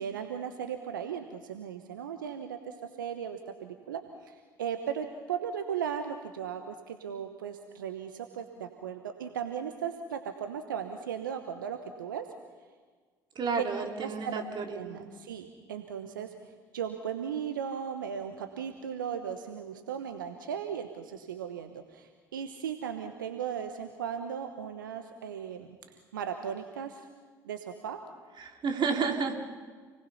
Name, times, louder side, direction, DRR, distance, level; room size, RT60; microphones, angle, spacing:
voice 1, 0.0-12.3 13.5-13.6 14.0-25.8 26.1-27.1 27.4-28.0, right 8 dB, 85° right, 7 dB, 1.1 m, -37 dB
voice 2, 13.4-15.1 28.4-29.3, right 5 dB, 45° right, 3 dB, 3.5 m, -31 dB
28.5 x 19.0 x 5.8 m, 1.5 s
hypercardioid pair, 60°, 11 cm